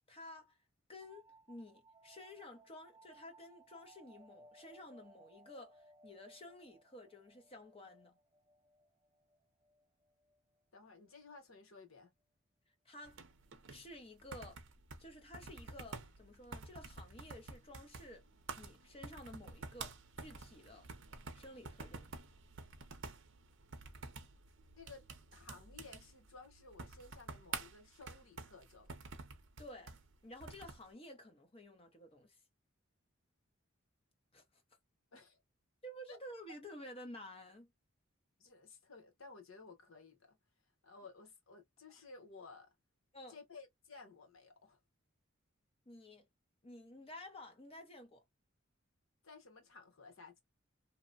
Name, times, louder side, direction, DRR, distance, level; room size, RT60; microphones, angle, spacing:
voice 1, 0.1-0.6 0.9-8.2 12.8-13.2 13.7-14.6 15.0-18.2 18.6-20.8 21.3-22.1 29.6-29.9 30.2-32.4 34.3-34.4 35.8-37.7 43.1-43.4 45.9-46.2 46.6-48.2, left 1 dB, 30° left, 0.7 m, -52 dB
sound 1, 1.0-10.4, right 2 dB, 25° right, 0.4 m, -64 dB
voice 2, 10.7-12.1 24.8-25.1 25.3-29.0 35.1-35.4 36.1-36.2 38.4-40.4 40.8-42.7 43.3-44.8 49.2-50.4, left 4 dB, 75° left, 1.1 m, -56 dB
sound 2, 13.0-30.9, right 4 dB, 65° right, 0.7 m, -50 dB
2.9 x 2.1 x 2.4 m
head